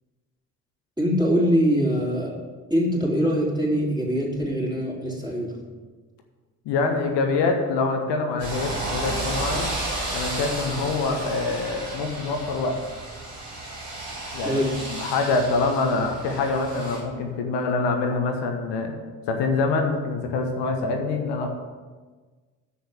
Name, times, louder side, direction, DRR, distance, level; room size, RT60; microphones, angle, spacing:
voice 1, 1.0-2.4 2.7-5.6 14.4-14.8, equal, 10° right, -4 dB, 3.5 m, -23 dB
voice 2, 6.6-9.7 10.1-12.8 14.3-14.6 15.0-18.9 19.3-21.5, left 3 dB, 60° left, 4 dB, 1.3 m, -25 dB
sound 1, 8.4-17.0, right 1 dB, 80° right, 2.1 m, -32 dB
7.7 x 6.9 x 7.6 m, 1.4 s
figure-of-eight pair, 40°, 47 cm